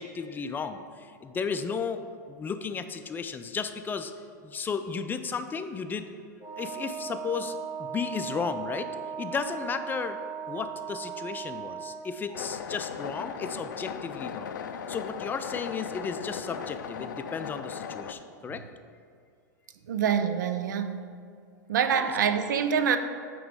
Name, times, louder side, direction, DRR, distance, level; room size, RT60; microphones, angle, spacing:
voice 1, 0.0-2.0 2.3-4.1 4.4-6.1 6.6-8.9 9.2-10.2 10.5-14.6 14.9-18.6, left 5 dB, 20° left, 8 dB, 0.4 m, -34 dB
Wind instrument woodwind instrument, 6.4-12.1, right 7 dB, 35° right, 1.6 m, -37 dB
sound 1, 12.3-18.1, left 7 dB, 80° left, 0.4 m, -37 dB
voice 2, 19.9-21.0 21.7-23.0, right 7 dB, 80° right, 9 dB, 0.5 m, -25 dB
8.9 x 3.1 x 4.8 m, 2.2 s
hypercardioid pair, 105°, 10 cm